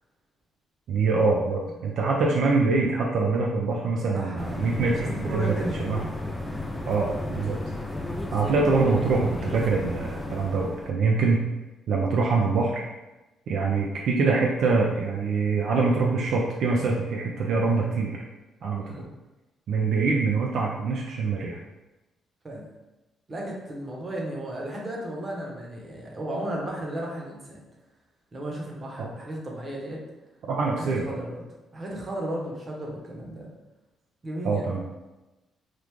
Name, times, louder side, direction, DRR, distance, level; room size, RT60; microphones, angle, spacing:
voice 1, 0.9-5.5 5.8-6.0 6.9-7.6 8.3-11.4 11.9-12.8 13.5-18.2 18.6-19.1 19.7-21.6 30.5-31.0 34.4-34.8, right 4 dB, 70° right, -1 dB, 0.4 m, -24 dB
voice 2, 4.1-5.8 11.3-11.4 18.8-19.1 22.4-22.7 23.3-27.6 28.3-30.0 30.8-31.4 31.7-33.5 34.2-34.8, right 1 dB, 30° right, -2 dB, 0.9 m, -35 dB
sound 1, 4.4-10.9, left 1 dB, 10° left, 0.4 m, -33 dB
3.1 x 2.4 x 3.5 m, 1.1 s
cardioid pair, 90°, 0 cm